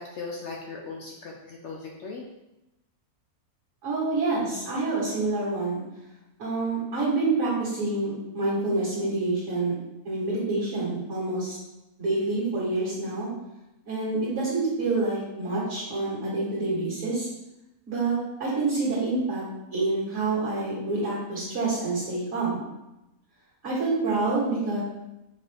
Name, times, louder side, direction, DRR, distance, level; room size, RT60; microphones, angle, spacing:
voice 1, 0.0-2.2, left 4 dB, 70° left, -1 dB, 0.7 m, -38 dB
voice 2, 3.8-5.8 6.4-9.7 10.0-11.6 12.0-13.3 13.9-17.3 17.9-19.4 19.7-22.6 23.6-24.8, right 3 dB, 50° right, -8 dB, 1.8 m, -27 dB
5.2 x 2.6 x 3.3 m, 0.96 s
omnidirectional pair, 1.7 m